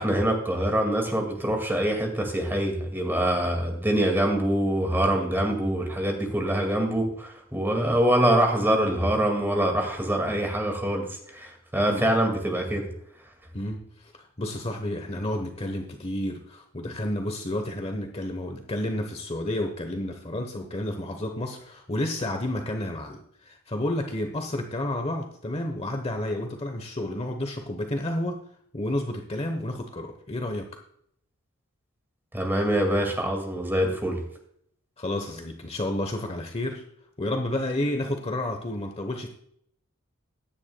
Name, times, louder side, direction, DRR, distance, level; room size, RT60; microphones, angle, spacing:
voice 1, 0.0-12.9 32.3-34.2, right 1 dB, 10° right, 2 dB, 2.2 m, -24 dB
voice 2, 13.5-28.4 28.7-30.7 35.0-36.8 37.2-39.3, left 1 dB, 30° left, 5 dB, 1.1 m, -31 dB
15.5 x 10.5 x 2.3 m, 0.68 s
head